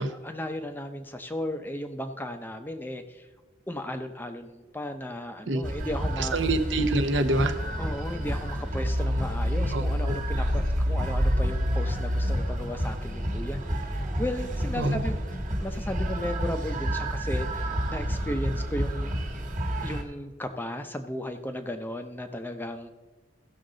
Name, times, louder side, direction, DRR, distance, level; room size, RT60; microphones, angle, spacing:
voice 1, 0.0-3.3 3.7-6.4 7.8-15.2 15.5-19.1 19.8-22.9, left 1 dB, 10° left, 7 dB, 0.5 m, -35 dB
sound 1, 5.6-20.0, equal, 40° right, 1.4 m, -29 dB
voice 2, 6.2-7.5 9.7-10.2 14.8-15.0, right 2 dB, 65° right, 8 dB, 0.8 m, -26 dB
15.5 x 6.4 x 3.8 m, 1.2 s
head